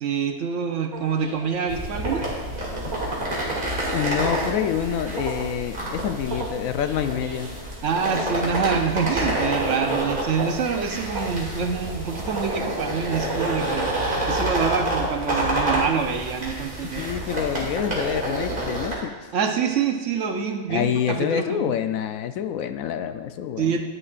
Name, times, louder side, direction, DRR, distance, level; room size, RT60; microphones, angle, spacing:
voice 1, 0.0-2.3 7.8-17.1 19.3-21.7 23.6-23.8, right 6 dB, 60° right, 5 dB, 1.0 m, -26 dB
sound 1, 0.9-13.5, right 3 dB, 80° right, 1.9 m, -37 dB
sound 2, 1.7-18.9, right 1 dB, 35° right, 2.5 m, -28 dB
voice 2, 3.9-7.5 16.8-19.1 20.7-23.8, left 9 dB, 75° left, 9 dB, 0.9 m, -27 dB
12.5 x 10.0 x 2.5 m, 1.3 s
omnidirectional pair, 1.5 m